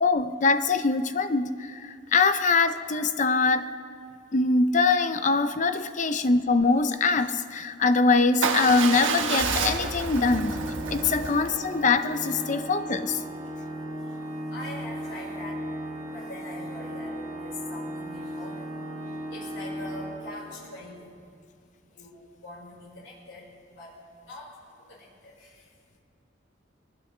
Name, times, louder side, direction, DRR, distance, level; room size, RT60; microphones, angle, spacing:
voice 1, 0.0-3.7 4.3-10.6 10.9-13.2, left 4 dB, 40° left, 10 dB, 0.6 m, -23 dB
Motorcycle / Engine starting / Idling, 8.4-12.5, right 5 dB, 75° right, 1.2 m, -30 dB
Organ, 10.0-20.8, equal, 35° right, 2.4 m, -36 dB
voice 2, 14.3-15.8 16.1-18.7 19.3-21.1 21.9-24.0 24.2-25.7, left 2 dB, 80° left, -5 dB, 5.0 m, -43 dB
22.0 x 19.5 x 3.3 m, 2.2 s
head